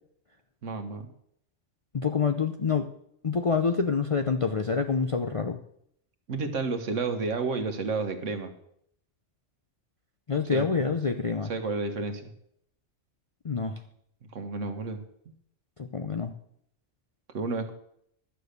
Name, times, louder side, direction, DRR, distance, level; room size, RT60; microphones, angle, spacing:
voice 1, 0.6-1.1 6.3-8.5 10.5-10.7 11.4-12.3 14.3-15.0 17.3-17.7, right 4 dB, 80° right, 8 dB, 1.5 m, -31 dB
voice 2, 1.9-2.9 3.2-5.6 10.3-11.5 13.4-13.7 15.9-16.3, left 5 dB, 45° left, 6 dB, 0.4 m, -26 dB
11.5 x 6.8 x 6.6 m, 0.72 s
omnidirectional pair, 1.3 m